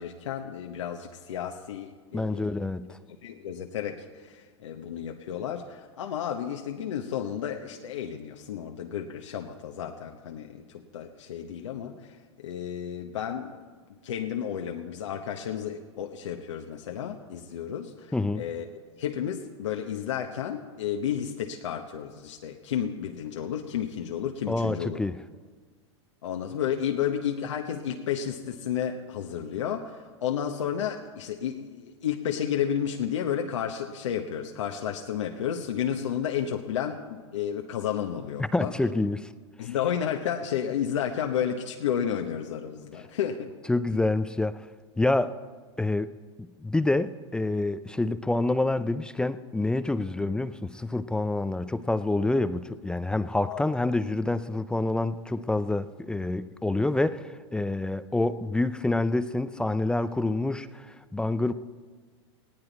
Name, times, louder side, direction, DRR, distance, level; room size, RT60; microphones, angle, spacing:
voice 1, 0.0-2.6 3.2-13.5 14.0-18.7 19.0-25.0 26.2-38.7 39.6-43.5 53.5-53.6, left 9 dB, 80° left, 1.1 m, -32 dB
voice 2, 2.1-3.0 18.1-18.4 24.5-25.2 38.4-39.3 39.6-39.7 43.7-44.7 45.0-45.3 45.8-46.1 46.4-61.5, left 2 dB, 5° left, 0.4 m, -27 dB
19.5 x 16.5 x 4.1 m
hypercardioid pair, 120°, 15 cm